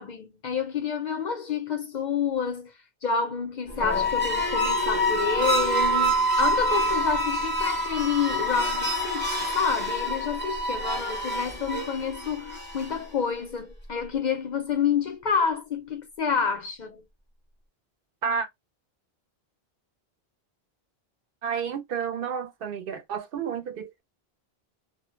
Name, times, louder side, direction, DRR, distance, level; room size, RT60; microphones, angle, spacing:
voice 1, 0.0-2.7 3.0-17.0, left 6 dB, 55° left, 0.6 m, -28 dB
sound 1, 3.7-13.1, equal, 15° left, 0.6 m, -26 dB
voice 2, 21.4-24.0, right 6 dB, 65° right, 0.7 m, -31 dB
2.1 x 2.0 x 3.0 m
omnidirectional pair, 1.0 m